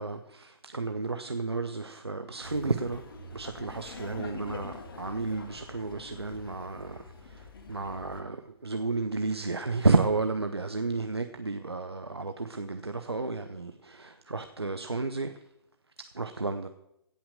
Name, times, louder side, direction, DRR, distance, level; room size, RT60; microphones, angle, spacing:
voice 1, 0.0-3.0 3.3-15.4 16.1-16.7, right 3 dB, 85° right, 0.8 m, -31 dB
Laughter, 2.4-8.2, left 3 dB, 65° left, 1.8 m, -45 dB
16.5 x 5.9 x 6.5 m
figure-of-eight pair, 120°, 13 cm